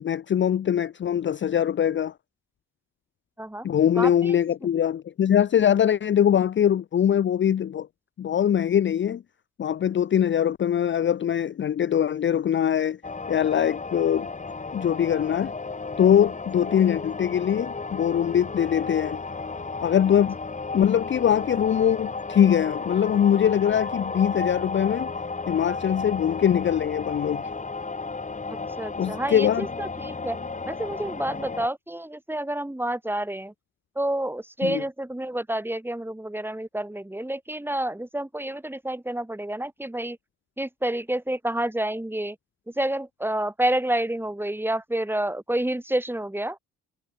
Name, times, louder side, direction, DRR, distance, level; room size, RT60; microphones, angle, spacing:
voice 1, 0.0-2.1 3.6-7.9 8.2-9.2 9.6-13.0 13.3-14.3 14.7-15.5 16.0-19.2 19.8-20.4 20.7-25.1 25.5-27.4 29.0-29.7 34.6-34.8, left 9 dB, 40° left, 0.6 m, -22 dB
voice 2, 4.0-4.4 28.8-30.4 30.7-33.5 33.9-40.2 40.6-42.4 42.7-46.6, right 1 dB, 5° right, 5.1 m, -29 dB
sound 1, 13.0-31.7, left 4 dB, 25° left, 3.0 m, -33 dB
cardioid pair, 90°, 30 cm